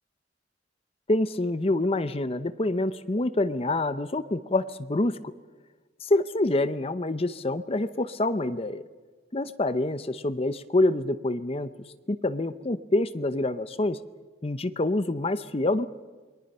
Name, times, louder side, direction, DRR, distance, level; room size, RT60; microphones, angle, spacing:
voice 1, 1.1-5.2 6.0-8.8 9.3-11.7 12.1-14.0 14.4-15.9, left 2 dB, 35° left, 12 dB, 0.7 m, -26 dB
28.5 x 22.5 x 5.5 m, 1.3 s
head